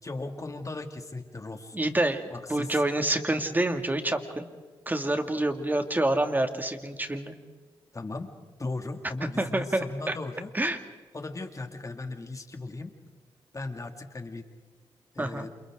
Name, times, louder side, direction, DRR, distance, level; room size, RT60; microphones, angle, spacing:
voice 1, 0.0-1.8 2.3-2.8 7.9-8.3 8.6-10.5 11.1-12.9 13.5-14.5 15.1-15.5, left 2 dB, 35° left, 6 dB, 2.5 m, -37 dB
voice 2, 1.7-4.5 4.9-7.3 9.4-10.1 10.5-10.8 15.2-15.5, right 1 dB, 20° right, 6 dB, 2.4 m, -27 dB
29.0 x 28.5 x 3.9 m, 1.3 s
cardioid pair, 70°, 10 cm